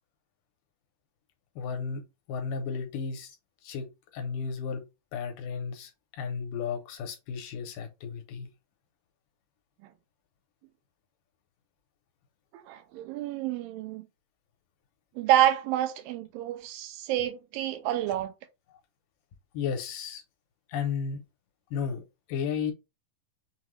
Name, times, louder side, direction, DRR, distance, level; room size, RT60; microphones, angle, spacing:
voice 1, 1.6-2.0 2.3-3.3 3.6-3.9 4.1-4.8 5.1-8.5 19.5-20.2 20.7-21.2 21.7-22.0 22.3-22.7, left 6 dB, 75° left, 2.4 m, -33 dB
voice 2, 12.5-14.1 15.2-18.3, right 12 dB, 85° right, 2.3 m, -28 dB
5.7 x 2.3 x 3.1 m
omnidirectional pair, 4.0 m